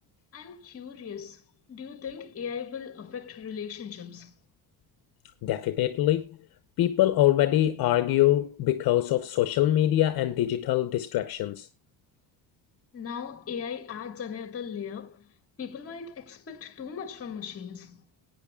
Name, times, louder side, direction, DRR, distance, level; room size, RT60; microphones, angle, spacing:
voice 1, 0.3-1.4 1.7-4.3 12.9-15.1 15.6-18.0, left 7 dB, 35° left, 1.8 m, -38 dB
voice 2, 5.4-6.4 6.8-11.7, left 13 dB, 60° left, 0.8 m, -24 dB
20.5 x 9.1 x 2.3 m
cardioid pair, 155°, 41 cm